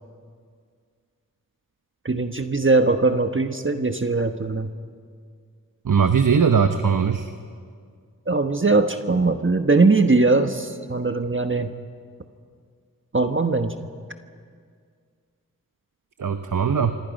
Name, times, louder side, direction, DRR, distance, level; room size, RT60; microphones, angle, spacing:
voice 1, 2.0-4.7 8.3-11.7 13.1-13.7, right 3 dB, 35° right, 7 dB, 1.3 m, -20 dB
voice 2, 5.8-7.3 16.2-17.0, right 6 dB, 65° right, 8 dB, 1.0 m, -20 dB
27.0 x 25.5 x 5.4 m, 2.1 s
cardioid pair, 45°, 35 cm